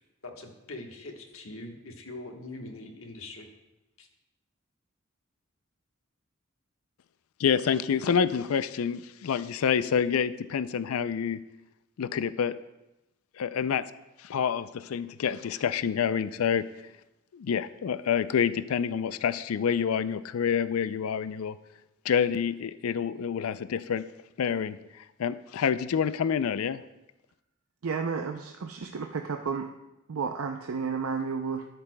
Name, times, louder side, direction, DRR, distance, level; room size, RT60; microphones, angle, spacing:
voice 1, 0.2-3.5 4.0-4.1, left 2 dB, 70° left, 3 dB, 1.3 m, -42 dB
voice 2, 7.4-11.4 12.0-12.5 13.4-13.8 14.2-16.7 17.3-21.6 22.0-24.1 24.4-26.8, left 7 dB, 90° left, 15 dB, 0.4 m, -27 dB
voice 3, 27.8-29.7 30.1-31.7, right 5 dB, 80° right, 4 dB, 0.5 m, -32 dB
12.5 x 11.0 x 2.2 m, 0.96 s
head